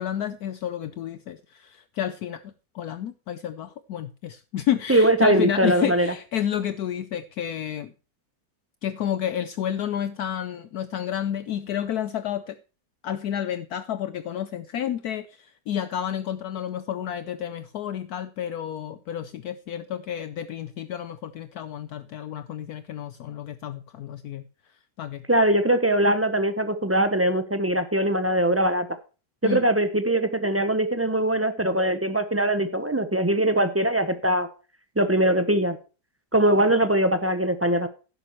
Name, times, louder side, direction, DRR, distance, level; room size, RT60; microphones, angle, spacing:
voice 1, 0.0-7.9 8.8-12.6 13.0-24.4 25.0-25.2 29.4-29.6, left 10 dB, 70° left, 12 dB, 1.0 m, -30 dB
voice 2, 4.9-6.1 25.3-28.9 29.4-34.5 35.0-35.8 36.3-37.9, right 1 dB, 20° right, 9 dB, 0.3 m, -21 dB
12.0 x 10.5 x 3.0 m, 0.34 s
omnidirectional pair, 1.9 m